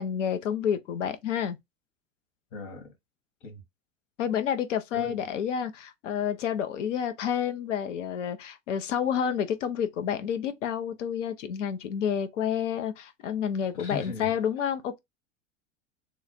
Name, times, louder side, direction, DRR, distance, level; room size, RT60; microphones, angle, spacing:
voice 1, 0.0-1.6 4.2-15.0, left 8 dB, 75° left, 0.8 m, -29 dB
voice 2, 2.5-2.9 3.4-3.6 4.9-5.2 13.7-14.4, left 3 dB, 55° left, 1.9 m, -38 dB
3.2 x 2.4 x 4.2 m
hypercardioid pair, 85°, 37 cm